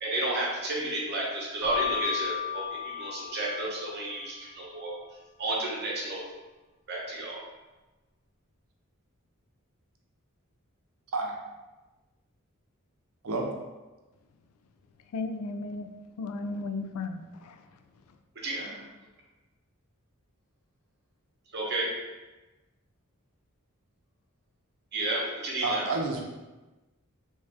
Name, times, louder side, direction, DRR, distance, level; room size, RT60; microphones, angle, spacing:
voice 1, 0.0-4.9 5.4-6.2 6.9-7.4 18.4-18.8 21.5-21.8 24.9-25.8, right 2 dB, 50° right, 0.9 m, -32 dB
Keyboard (musical), 1.6-4.2, left 7 dB, 10° right, 1.0 m, -33 dB
voice 2, 15.1-15.9 16.2-17.6, left 3 dB, 85° left, 0.3 m, -35 dB
voice 3, 25.6-26.2, right 3 dB, 80° right, 0.6 m, -29 dB
3.5 x 2.7 x 3.3 m
head